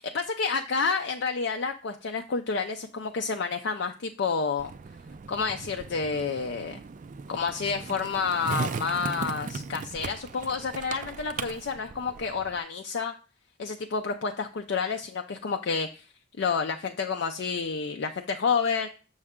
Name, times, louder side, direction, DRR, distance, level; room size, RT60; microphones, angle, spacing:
voice 1, 0.0-4.7 5.3-6.8 7.3-13.1 13.6-16.1 16.4-18.9, left 5 dB, 65° left, 4 dB, 0.5 m, -29 dB
Skateboard, 4.6-12.6, right 5 dB, 40° right, 0.3 m, -38 dB
6.7 x 6.3 x 3.6 m, 0.37 s
head